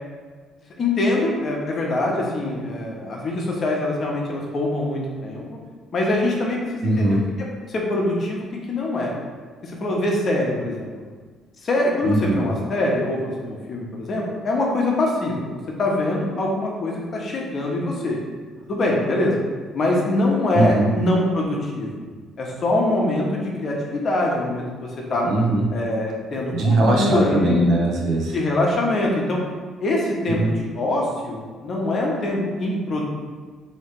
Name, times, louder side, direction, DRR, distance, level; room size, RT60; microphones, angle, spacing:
voice 1, 0.8-5.6 5.9-9.1 9.6-10.9 11.6-18.2 18.6-19.4 19.7-22.0 22.4-25.3 25.7-27.6 28.3-29.4 29.8-33.0, left 1 dB, 45° left, -2 dB, 0.9 m, -24 dB
voice 2, 6.8-7.2 12.1-12.4 20.5-20.9 25.2-25.7 26.5-28.4 30.4-30.5, right 2 dB, 70° right, -1 dB, 0.8 m, -20 dB
3.2 x 2.8 x 4.5 m, 1.5 s
cardioid pair, 120°, 0 cm